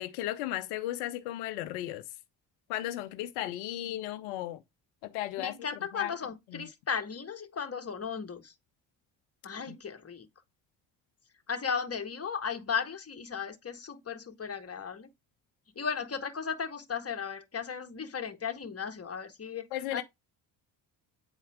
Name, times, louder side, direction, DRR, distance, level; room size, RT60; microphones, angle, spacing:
voice 1, 0.0-2.0 2.7-4.6 5.0-5.5 5.9-6.2 6.5-6.7 9.7-9.8 19.7-20.0, left 14 dB, 80° left, 0.7 m, -35 dB
voice 2, 5.4-8.5 9.4-10.3 11.5-15.1 15.7-20.0, left 6 dB, 30° left, 1.4 m, -36 dB
9.0 x 4.3 x 3.6 m
hypercardioid pair, 50°, 50 cm